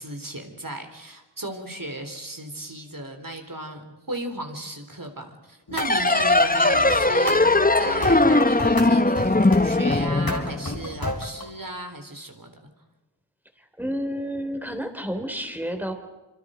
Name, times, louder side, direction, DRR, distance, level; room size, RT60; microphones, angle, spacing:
voice 1, 0.0-12.5, right 1 dB, 50° right, 5 dB, 3.7 m, -35 dB
sound 1, 5.7-5.9 6.2-8.9 9.2-9.6 9.9-11.5, left 2 dB, 55° left, 3.8 m, -32 dB
sound 2, 5.8-11.0, left 2 dB, 20° left, 0.9 m, -20 dB
voice 2, 13.8-15.9, equal, 5° right, 6 dB, 3.4 m, -30 dB
27.5 x 25.5 x 5.1 m, 1.1 s
wide cardioid pair, 45°, 43 cm